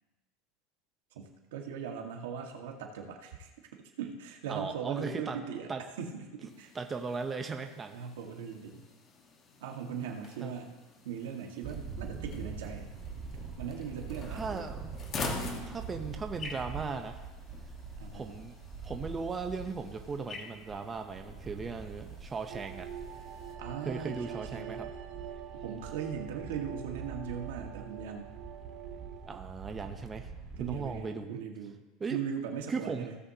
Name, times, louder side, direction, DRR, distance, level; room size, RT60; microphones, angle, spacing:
voice 1, 1.1-3.5 4.0-5.7 6.0-6.7 7.9-8.9 9.6-10.7 11.0-12.9 13.6-14.7 15.4-15.7 18.0-18.3 23.6-24.8 25.5-28.3 30.6-31.8 32.1-33.2, right 7 dB, 90° right, 2 dB, 1.6 m, -39 dB
voice 2, 4.5-5.9 6.4-8.0 9.8-10.5 14.3-15.0 15.7-17.3 18.1-18.5 18.8-22.9 23.8-24.9 29.3-30.3 30.6-31.4 32.0-32.2 32.7-33.1, right 4 dB, 20° right, 5 dB, 0.7 m, -38 dB
sound 1, 6.5-23.5, left 4 dB, 30° left, 1.4 m, -46 dB
sound 2, 11.6-31.0, right 5 dB, 35° right, 1.4 m, -44 dB
sound 3, 22.5-29.4, right 11 dB, 60° right, 0.7 m, -45 dB
17.0 x 7.6 x 2.8 m, 1.1 s
supercardioid pair, 145°, 0 cm